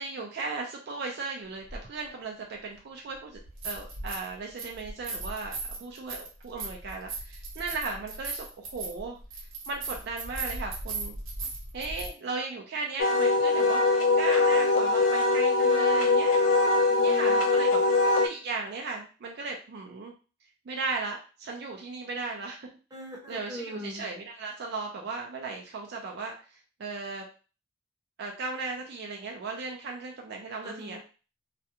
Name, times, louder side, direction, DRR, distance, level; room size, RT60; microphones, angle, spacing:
voice 1, 0.0-3.4 3.6-9.2 9.7-11.1 11.7-13.8 14.2-16.4 17.0-17.8 18.1-20.1 20.7-22.7 23.3-26.3 26.8-27.3 28.2-31.0, right 3 dB, 55° right, 1 dB, 0.4 m, -36 dB
sound 1, 1.7-1.8 3.4-4.3 4.6-12.1, right 3 dB, 75° right, 0.9 m, -37 dB
Wind instrument woodwind instrument, 13.0-18.3, left 3 dB, 70° left, 0.5 m, -22 dB
voice 2, 16.9-17.8 22.9-24.0 30.6-31.0, equal, 20° right, -2 dB, 0.7 m, -41 dB
2.4 x 2.2 x 2.7 m, 0.35 s
head